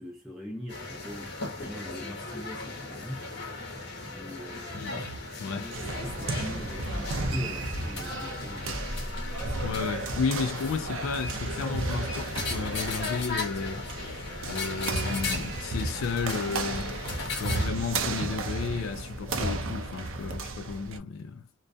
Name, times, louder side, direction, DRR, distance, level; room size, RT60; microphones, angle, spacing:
voice 1, 0.0-3.3 4.1-4.9 5.5-8.7, left 1 dB, ahead, 0.5 m, -42 dB
sound 1, 0.7-17.7, left 3 dB, 50° left, 0.9 m, -37 dB
sound 2, 4.9-5.2 6.8-7.3 8.6-9.8, equal, 40° right, 0.9 m, -37 dB
voice 2, 5.4-5.9 9.6-13.9 14.4-16.9 17.3-21.5, left 5 dB, 75° left, 0.3 m, -33 dB
sound 3, 5.7-21.0, right 3 dB, 65° right, 0.5 m, -34 dB
2.3 x 2.2 x 2.5 m
head